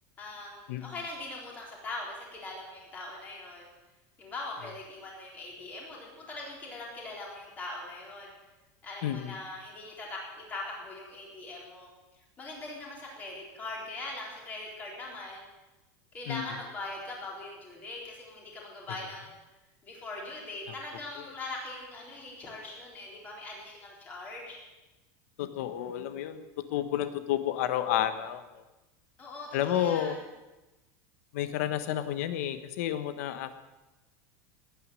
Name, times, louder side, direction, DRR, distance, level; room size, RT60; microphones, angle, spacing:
voice 1, 0.2-3.7 4.2-8.3 8.8-11.9 12.4-15.5 16.1-19.4 19.8-24.6 29.2-30.2, left 2 dB, 20° left, -2 dB, 4.1 m, -41 dB
voice 2, 9.0-9.3 16.3-16.5 25.4-26.4 26.7-28.6 29.5-30.1 31.3-33.6, left 11 dB, 60° left, 10 dB, 1.3 m, -31 dB
19.5 x 9.6 x 7.7 m, 1.1 s
supercardioid pair, 180°, 9 cm